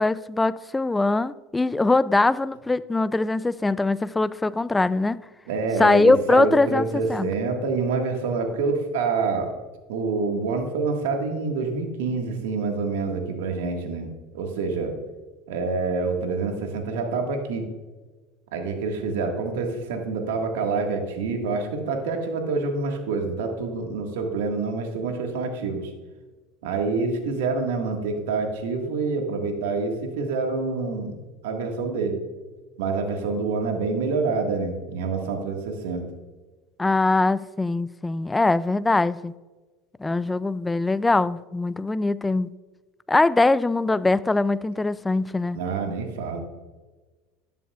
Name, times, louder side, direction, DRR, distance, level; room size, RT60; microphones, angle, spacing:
voice 1, 0.0-5.2 5.8-7.3 36.8-39.3 40.0-42.5 43.1-45.6, left 2 dB, 10° left, 0.3 m, -22 dB
voice 2, 5.5-9.5 9.9-14.9 15.5-17.7 18.5-25.9 26.6-31.2 31.4-32.2 32.8-36.0 45.5-46.4, right 4 dB, 85° right, 1.7 m, -27 dB
11.5 x 10.0 x 2.4 m
supercardioid pair, 105°, 0 cm